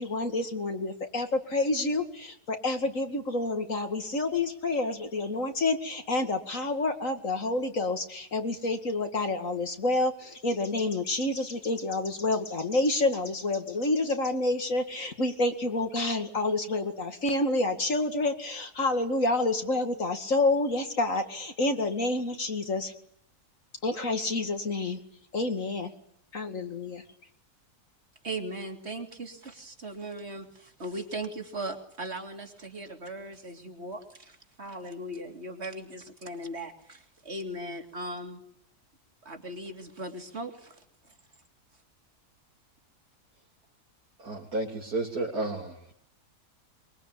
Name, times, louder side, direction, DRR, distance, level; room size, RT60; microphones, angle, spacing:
voice 1, 0.0-22.9 23.8-25.0 25.3-25.9 26.3-27.0, left 2 dB, 55° left, 6 dB, 2.5 m, -28 dB
voice 2, 28.2-38.4 39.2-40.8, right 1 dB, 40° right, 5 dB, 3.5 m, -38 dB
voice 3, 44.2-45.9, right 2 dB, 70° right, -3 dB, 4.0 m, -32 dB
23.5 x 23.5 x 9.9 m, 0.69 s
omnidirectional pair, 1.7 m